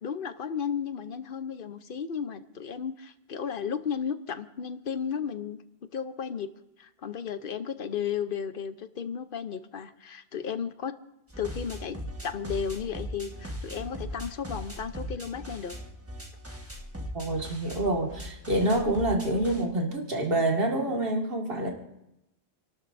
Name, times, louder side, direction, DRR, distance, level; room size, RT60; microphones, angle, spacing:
voice 1, 0.0-5.6 5.9-6.5 6.8-10.9 11.4-15.8, left 7 dB, 60° left, 11 dB, 0.9 m, -34 dB
sound 1, 11.3-19.6, equal, 15° right, 1.4 m, -39 dB
voice 2, 17.1-21.7, right 1 dB, 65° right, 0 dB, 2.2 m, -27 dB
29.5 x 12.5 x 2.6 m, 0.86 s
omnidirectional pair, 1.0 m